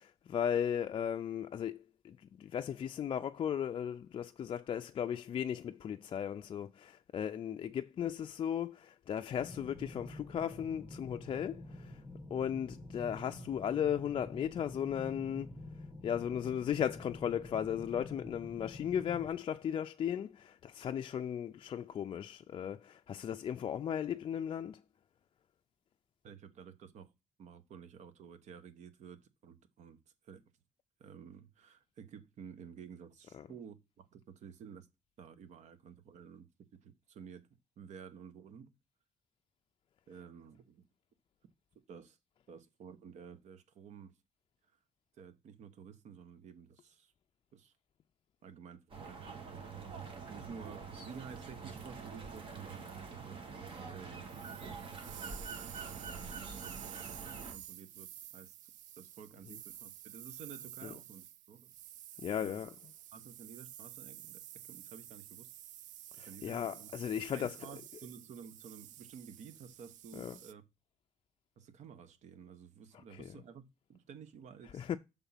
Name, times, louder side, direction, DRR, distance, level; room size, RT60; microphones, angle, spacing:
voice 1, 0.0-12.0 12.3-15.5 16.0-24.8 33.3-33.5 59.5-59.6 60.8-61.0 62.2-62.9 66.2-68.0 70.1-70.4 72.9-73.4 74.6-75.0, left 9 dB, 45° left, 0.4 m, -36 dB
sound 1, 9.4-19.3, left 1 dB, 5° left, 1.6 m, -48 dB
voice 2, 26.2-27.1 27.4-30.4 31.0-34.9 35.2-36.5 36.8-37.5 37.8-38.7 40.1-40.8 41.9-42.2 42.5-44.1 45.2-47.1 47.5-47.7 48.4-52.9 53.9-54.4 55.1-58.1 58.3-58.7 59.0-61.7 62.4-62.6 63.1-65.5 66.2-66.9 67.3-70.6 71.6-75.0, right 7 dB, 70° right, 1.0 m, -52 dB
sound 2, 48.9-57.5, right 5 dB, 45° right, 1.7 m, -45 dB
sound 3, 54.3-70.5, right 12 dB, 90° right, 0.4 m, -51 dB
7.0 x 3.6 x 5.5 m
cardioid pair, 140°, 13 cm